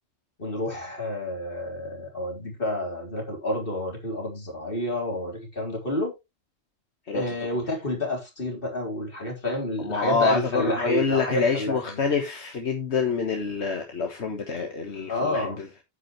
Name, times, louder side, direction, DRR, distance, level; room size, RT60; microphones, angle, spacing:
voice 1, 0.4-6.1 7.1-12.0 15.1-15.6, left 1 dB, 55° left, 4.1 m, -29 dB
voice 2, 9.8-15.7, left 5 dB, 80° left, 1.7 m, -27 dB
9.8 x 8.0 x 3.1 m
omnidirectional pair, 1.1 m